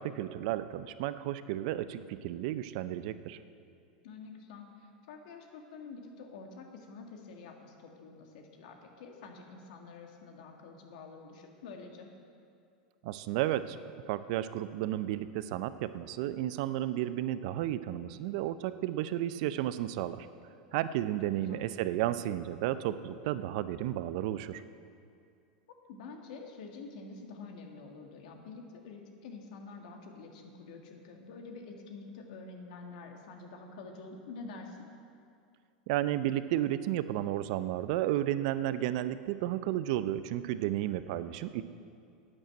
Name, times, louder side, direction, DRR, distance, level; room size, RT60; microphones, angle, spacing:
voice 1, 0.0-3.4 13.0-13.8 14.1-20.3 20.7-24.6 35.9-41.6, right 13 dB, 60° right, 13 dB, 0.6 m, -32 dB
voice 2, 4.0-12.1 21.1-21.6 25.9-34.8, left 4 dB, 70° left, 3 dB, 1.9 m, -47 dB
11.0 x 8.9 x 7.6 m, 2.4 s
hypercardioid pair, 110°, 4 cm